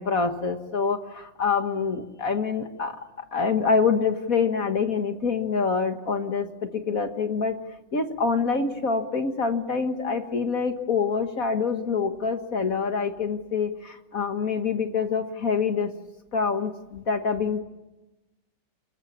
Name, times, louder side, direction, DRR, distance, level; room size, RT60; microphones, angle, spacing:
voice 1, 0.0-7.6 7.9-15.9 16.3-17.6, left 5 dB, 45° left, 7 dB, 1.7 m, -26 dB
26.0 x 22.5 x 8.6 m, 1.0 s
omnidirectional pair, 2.3 m